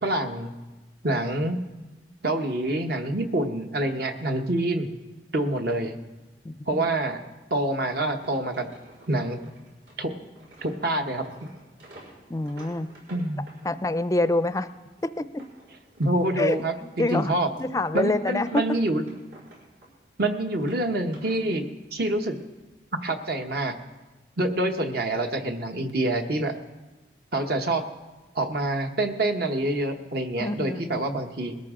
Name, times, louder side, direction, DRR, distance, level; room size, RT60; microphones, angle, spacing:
voice 1, 0.0-0.5 1.0-1.6 2.2-4.9 5.3-5.9 6.7-7.2 7.5-8.7 9.1-9.4 10.0-10.1 10.6-11.5 13.1-13.4 16.0-17.5 17.9-19.0 20.2-22.4 23.0-23.7 24.4-26.5 27.3-27.8 28.3-31.6, right 1 dB, 60° right, 5 dB, 1.1 m, -26 dB
voice 2, 6.4-6.9 12.3-12.9 13.6-14.7 15.2-15.3 16.4-17.3 17.6-18.6 30.4-31.0, left 2 dB, 20° left, 13 dB, 0.4 m, -26 dB
sound 1, 8.1-14.0 14.4-16.6 16.9-20.1 20.4-21.4, right 1 dB, 80° right, 5.2 m, -51 dB
20.5 x 13.0 x 3.7 m, 1.1 s
head